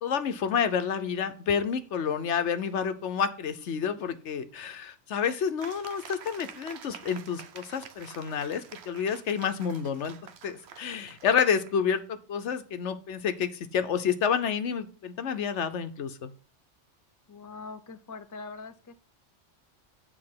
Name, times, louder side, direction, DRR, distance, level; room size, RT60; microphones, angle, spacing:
voice 1, 0.0-10.2 10.4-16.3, left 7 dB, 70° left, 10 dB, 1.1 m, -29 dB
sound 1, 5.6-12.0, right 8 dB, 65° right, 0.9 m, -48 dB
voice 2, 17.3-18.9, left 4 dB, 30° left, 9 dB, 0.3 m, -42 dB
8.7 x 4.3 x 5.9 m, 0.37 s
omnidirectional pair, 1.2 m